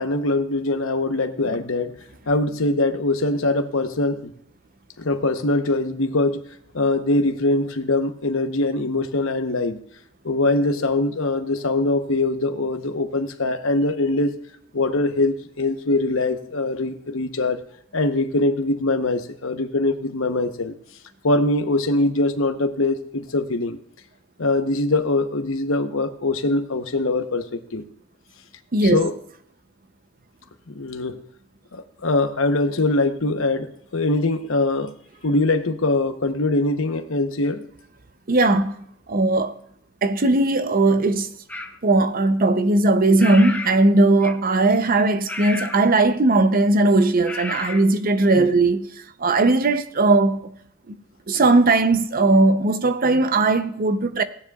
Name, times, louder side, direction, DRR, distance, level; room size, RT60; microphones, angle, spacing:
voice 1, 0.0-2.0 2.3-4.3 5.0-6.4 6.7-9.8 10.2-14.3 14.7-17.6 17.9-20.8 21.2-23.8 24.4-27.8 28.8-29.1 30.7-31.2 31.7-34.9 35.2-37.6 48.4-48.5, left 2 dB, 65° left, 0.9 m, -22 dB
voice 2, 28.7-29.1 38.3-38.7 39.1-39.6 40.0-41.3 41.8-48.9 49.2-50.4 50.9-51.0 51.3-54.2, right 2 dB, 45° right, 0.6 m, -18 dB
sound 1, 41.5-41.8 43.2-43.8 44.2-44.5 45.3-45.9 47.3-47.8, left 2 dB, 5° left, 0.7 m, -32 dB
16.5 x 9.6 x 2.4 m
head